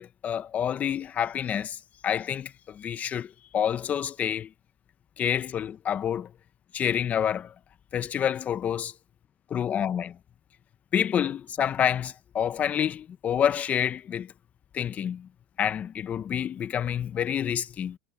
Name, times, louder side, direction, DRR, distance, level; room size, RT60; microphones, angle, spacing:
voice 1, 0.0-4.5 5.2-6.3 6.7-7.5 7.9-8.9 9.5-10.2 10.9-14.3 14.7-15.3 15.6-18.0, left 9 dB, 35° left, 1.0 m, -28 dB
supercardioid pair, 105°, 4 cm